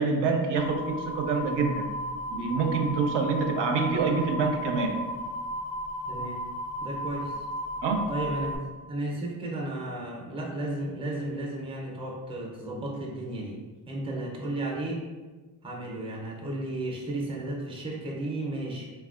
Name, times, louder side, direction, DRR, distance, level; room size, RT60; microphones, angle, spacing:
voice 1, 0.0-1.9 2.3-5.0 7.8-8.2, right 4 dB, 70° right, 3 dB, 0.5 m, -26 dB
sound 1, 0.6-8.6, left 1 dB, 60° left, 0.5 m, -35 dB
voice 2, 6.1-6.4 6.8-7.5 8.1-8.6 8.9-13.6 13.9-15.0 15.6-18.9, right 1 dB, 15° right, 0 dB, 0.5 m, -33 dB
3.3 x 2.3 x 2.4 m, 1.3 s
cardioid pair, 105°, 44 cm